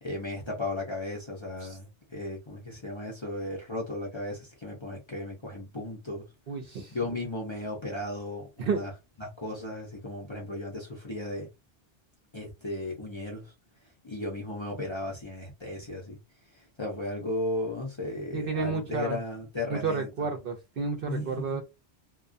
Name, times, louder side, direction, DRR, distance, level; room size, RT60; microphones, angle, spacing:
voice 1, 0.0-6.3 6.9-8.9 9.2-11.5 12.3-13.5 14.0-16.2 16.5-20.4 21.1-21.6, left 2 dB, 30° left, 0.6 m, -35 dB
voice 2, 6.5-6.9 8.6-8.8 18.3-19.2 19.7-21.6, right 4 dB, 60° right, 0.7 m, -31 dB
2.3 x 2.1 x 2.5 m
omnidirectional pair, 1.2 m